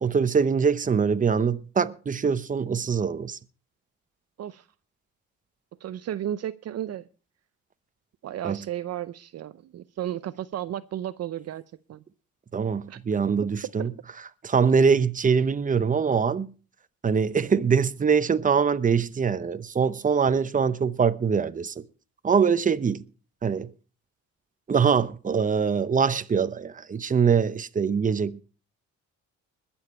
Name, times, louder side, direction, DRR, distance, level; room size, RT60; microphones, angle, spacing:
voice 1, 0.0-3.4 8.4-8.6 12.5-13.9 14.4-16.5 17.0-21.7 22.2-23.0 23.4-23.7 24.7-28.4, right 6 dB, 25° right, 0.8 m, -23 dB
voice 2, 5.8-7.0 8.2-11.6 11.9-12.0 12.9-13.0 13.8-13.9, right 11 dB, 55° right, 0.6 m, -33 dB
21.0 x 7.2 x 4.3 m
cardioid pair, 90°, 30 cm